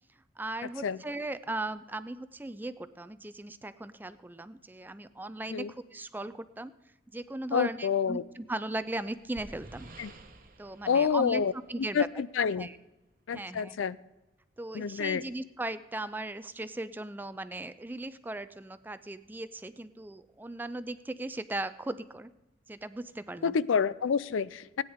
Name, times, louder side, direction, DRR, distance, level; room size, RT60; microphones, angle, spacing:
voice 1, 0.4-6.7 7.1-9.9 10.6-11.4 11.7-12.1 12.6-12.8 13.3-13.8 14.6-22.3 22.7-23.6, right 2 dB, 10° right, 13 dB, 0.3 m, -38 dB
voice 2, 7.5-8.2 10.0-10.1 10.9-11.5 11.9-12.7 13.3-14.0 14.7-15.2 23.4-24.8, left 6 dB, 85° left, 18 dB, 0.4 m, -28 dB
sound 1, 8.9-12.2, right 2 dB, 45° right, 1.0 m, -52 dB
17.0 x 9.6 x 3.6 m, 1.0 s
head